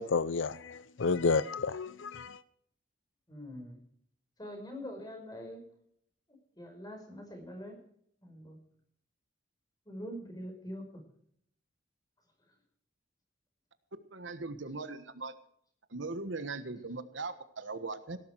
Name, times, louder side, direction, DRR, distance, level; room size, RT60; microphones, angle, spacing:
voice 1, 0.0-2.4, left 4 dB, 80° left, 0.6 m, -31 dB
voice 2, 3.3-3.8 4.4-5.6 6.6-7.8 8.2-8.6 9.9-11.0, equal, 20° left, 5.4 m, -44 dB
voice 3, 14.1-15.3 15.9-18.2, right 3 dB, 75° right, 1.3 m, -39 dB
17.5 x 12.0 x 4.7 m
head